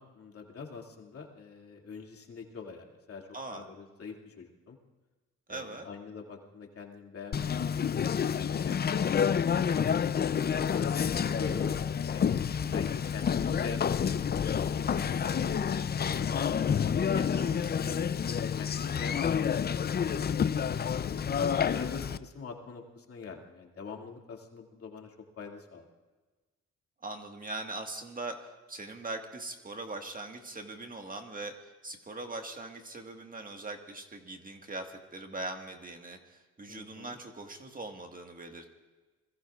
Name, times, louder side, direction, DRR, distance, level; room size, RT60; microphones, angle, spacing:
voice 1, 0.0-4.8 5.5-9.3 9.5-12.3 12.7-16.7 17.1-18.3 18.6-20.8 21.3-25.9 36.7-37.2, left 5 dB, 50° left, 0 dB, 2.5 m, -44 dB
voice 2, 3.3-3.6 5.5-5.9 12.4-12.9 17.3-17.7 27.0-31.6 31.8-38.8, right 2 dB, 30° right, 4 dB, 1.7 m, -41 dB
Conversation, 7.3-22.2, left 7 dB, 35° left, 0.5 m, -29 dB
26.5 x 21.0 x 2.5 m, 1.2 s
cardioid pair, 90°, 30 cm